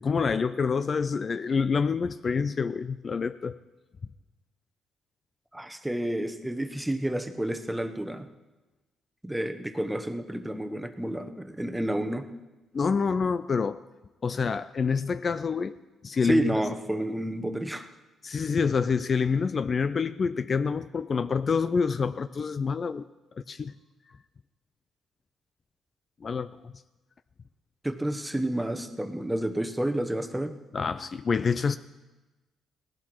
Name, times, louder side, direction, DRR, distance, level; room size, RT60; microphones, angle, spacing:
voice 1, 0.0-3.6 12.7-13.8 14.2-15.7 16.0-16.6 18.2-23.1 23.5-23.8 26.2-26.7 30.7-31.8, left 5 dB, 40° left, 13 dB, 0.4 m, -27 dB
voice 2, 5.5-8.3 9.2-12.3 16.2-17.9 27.8-30.6, right 1 dB, 5° right, 9 dB, 1.0 m, -30 dB
17.5 x 11.5 x 4.6 m, 1.1 s
cardioid pair, 90°, 0 cm